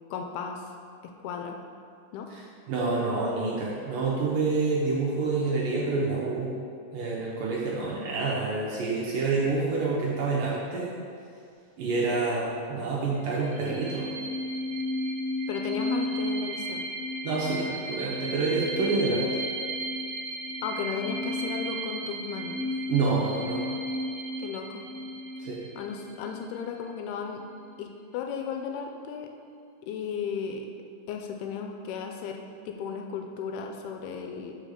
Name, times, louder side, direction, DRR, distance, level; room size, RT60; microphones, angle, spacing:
voice 1, 0.1-0.7 1.0-1.6 2.1-2.3 15.5-16.8 20.6-22.6 24.4-24.9 25.8-27.4 27.8-29.3 29.8-30.7 31.1-32.4 32.7-34.6, left 6 dB, 80° left, 3 dB, 2.4 m, -35 dB
voice 2, 2.7-6.5 6.9-10.9 11.8-14.1 17.2-19.2 22.9-23.6 25.4-25.6, right 3 dB, 70° right, -5 dB, 2.2 m, -27 dB
sound 1, 13.2-26.6, equal, 85° right, 2.7 m, -33 dB
5.6 x 5.2 x 6.5 m, 2.4 s
omnidirectional pair, 4.7 m